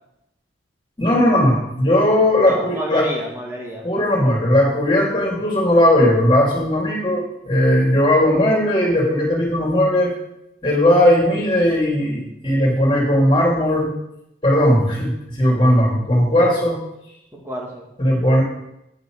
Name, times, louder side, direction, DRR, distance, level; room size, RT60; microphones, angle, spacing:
voice 1, 1.0-3.1 3.8-10.1 10.6-13.9 14.4-16.8 18.0-18.4, left 1 dB, 25° left, -3 dB, 3.3 m, -17 dB
voice 2, 2.4-3.9 17.3-17.9, equal, 15° right, -2 dB, 2.0 m, -30 dB
9.7 x 6.7 x 6.5 m, 0.82 s
head